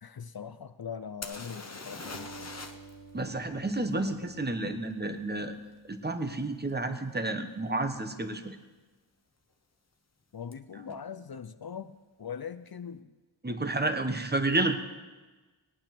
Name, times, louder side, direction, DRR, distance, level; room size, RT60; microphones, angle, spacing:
voice 1, 0.0-2.6 4.0-4.3 10.3-13.1, left 7 dB, 50° left, 11 dB, 0.6 m, -41 dB
sound 1, 1.2-2.9 3.2-3.3 6.7-6.8 7.4-7.6 7.9-8.5 10.5-10.6 10.9-11.0, left 3 dB, 35° left, 1.1 m, -42 dB
Acoustic guitar, 2.1-6.5, right 2 dB, 85° left, 1.4 m, -51 dB
voice 2, 3.1-5.6 5.9-8.6 13.4-14.8, right 2 dB, 20° right, 8 dB, 1.2 m, -30 dB
19.0 x 8.9 x 6.0 m, 1.3 s
wide cardioid pair, 75°, 47 cm